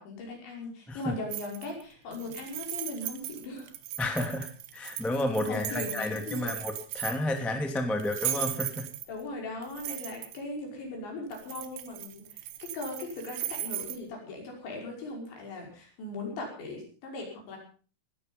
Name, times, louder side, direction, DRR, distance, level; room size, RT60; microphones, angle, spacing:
voice 1, 0.0-3.7 5.5-6.5 9.1-12.5 12.7-17.6, left 2 dB, 60° left, 0 dB, 7.7 m, -39 dB
sound 1, 1.3-1.8 2.1-7.4 8.0-9.2 9.6-10.4 11.3-14.0, right 13 dB, 70° right, 3.4 m, -37 dB
voice 2, 4.0-8.9, left 1 dB, ahead, 4 dB, 1.1 m, -31 dB
19.5 x 13.0 x 5.4 m, 0.40 s
omnidirectional pair, 5.8 m